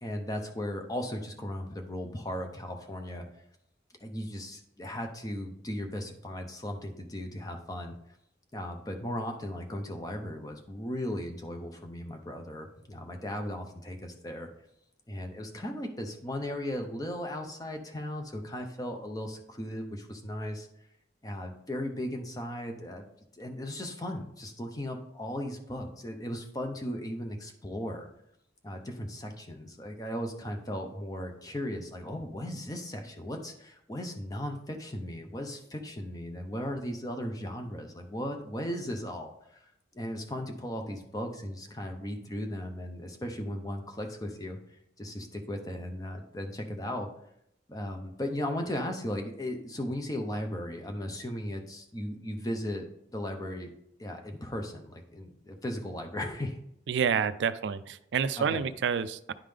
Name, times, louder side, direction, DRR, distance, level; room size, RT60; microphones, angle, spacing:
voice 1, 0.0-3.3 4.0-8.0 8.5-14.5 15.1-20.7 21.2-23.1 23.3-28.1 28.6-47.1 47.7-53.7 54.0-56.6 58.4-58.6, left 1 dB, 20° left, 4 dB, 0.7 m, -37 dB
voice 2, 56.9-59.3, right 7 dB, 75° right, 14 dB, 0.4 m, -28 dB
10.5 x 3.7 x 3.3 m, 0.75 s
head